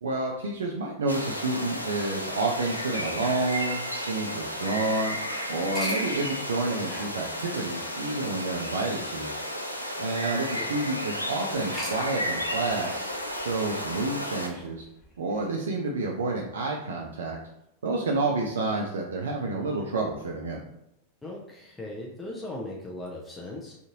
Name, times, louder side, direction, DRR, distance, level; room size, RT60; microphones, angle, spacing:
voice 1, 0.0-5.2 5.5-9.7 10.0-14.8 15.2-17.4 17.8-20.6, right 2 dB, 65° right, -1 dB, 0.3 m, -29 dB
sound 1, 1.1-14.5, equal, 90° left, 0.3 m, -33 dB
sound 2, 5.7-11.0 11.5-15.5, equal, 5° right, 1.2 m, -45 dB
voice 2, 10.3-10.8 21.2-23.8, left 1 dB, 10° left, -3 dB, 0.5 m, -38 dB
2.5 x 2.4 x 2.8 m, 0.82 s
figure-of-eight pair, 90°, 0 cm